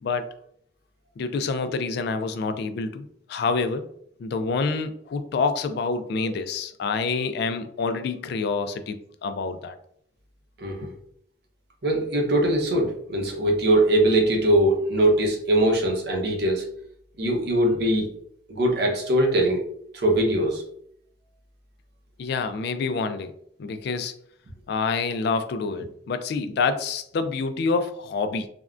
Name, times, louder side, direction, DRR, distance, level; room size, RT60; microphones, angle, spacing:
voice 1, 0.0-0.3 1.2-3.8 4.2-9.7 22.2-23.3 23.6-24.1 24.7-28.5, left 4 dB, 65° left, 9 dB, 0.3 m, -27 dB
voice 2, 10.6-10.9 11.8-16.6 17.2-18.1 18.5-19.6 19.9-20.6, right 1 dB, 65° right, 0 dB, 0.7 m, -21 dB
3.5 x 2.1 x 2.4 m, 0.67 s
head